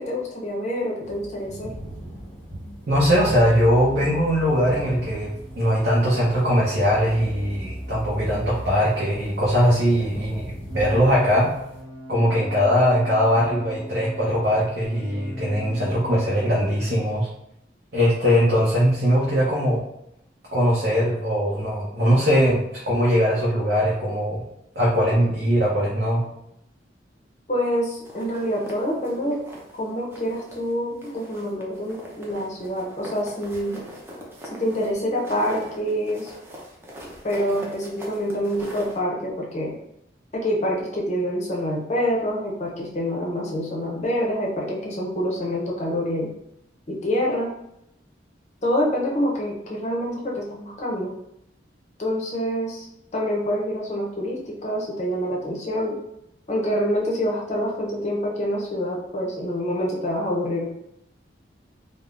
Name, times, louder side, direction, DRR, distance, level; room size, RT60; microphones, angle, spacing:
voice 1, 0.0-1.7 27.5-29.4 29.7-33.8 34.5-36.3 37.2-39.7 40.3-46.3 46.9-47.5 48.6-51.1 52.0-52.9 53.1-56.0 56.5-60.7, equal, 40° left, -2 dB, 0.6 m, -26 dB
sound 1, 1.0-11.8, equal, 10° left, 0.9 m, -40 dB
sound 2, 2.9-8.8 10.7-16.8, equal, 35° right, 0.9 m, -38 dB
voice 2, 2.9-11.5 12.1-17.3 17.9-19.8 20.5-22.6 22.9-24.4 24.7-26.2, equal, 60° right, -7 dB, 0.7 m, -21 dB
sound 3, 28.0-29.8 30.1-30.7 31.0-39.0, equal, 15° right, 0.5 m, -42 dB
3.5 x 2.0 x 2.4 m, 0.79 s
head